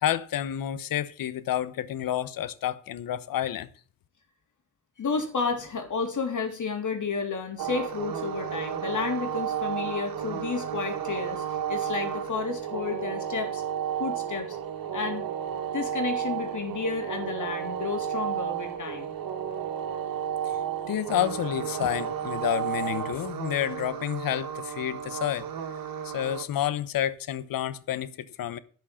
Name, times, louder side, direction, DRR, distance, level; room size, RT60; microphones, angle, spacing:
voice 1, 0.0-3.7 20.8-25.5 26.0-28.6, left 11 dB, 75° left, 1.0 m, -29 dB
voice 2, 5.0-13.6 14.0-14.6 14.9-15.3 15.7-19.1, left 5 dB, 60° left, 3.6 m, -31 dB
sound 1, 7.6-26.4, right 9 dB, 80° right, 1.8 m, -32 dB
11.5 x 6.3 x 8.6 m
supercardioid pair, 55°, 34 cm